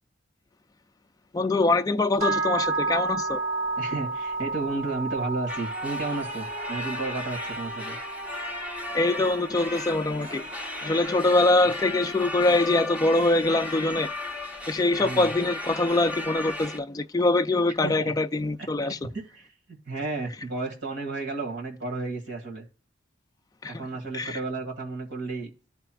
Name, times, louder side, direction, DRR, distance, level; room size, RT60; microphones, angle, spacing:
voice 1, 1.3-3.4 8.9-10.4 10.8-14.1 14.7-19.0 23.6-23.8 24.1-24.4, left 2 dB, 20° left, 0.3 m, -23 dB
sound 1, 2.2-12.3, right 3 dB, 35° right, 1.3 m, -33 dB
voice 2, 3.8-8.0 15.0-15.3 17.8-18.1 18.6-22.7 23.7-25.7, right 3 dB, 65° right, 1.8 m, -33 dB
sound 2, 5.5-16.8, left 2 dB, 10° right, 0.8 m, -36 dB
13.5 x 4.4 x 2.3 m
head